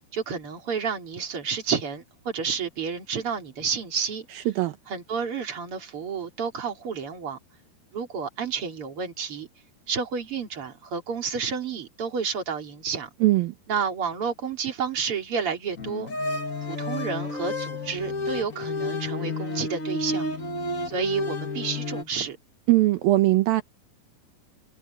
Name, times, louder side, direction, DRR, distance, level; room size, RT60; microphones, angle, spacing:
voice 1, 0.1-4.3 4.9-7.4 7.9-9.5 9.9-13.1 13.7-16.1 16.7-20.3 20.9-22.4, right 6 dB, 40° right, 3.7 m, -30 dB
voice 2, 4.3-4.8 13.2-13.5 22.7-23.6, right 17 dB, 75° right, 2.8 m, -20 dB
sound 1, 15.8-22.0, left 2 dB, 30° left, 1.7 m, -31 dB
omnidirectional pair, 4.3 m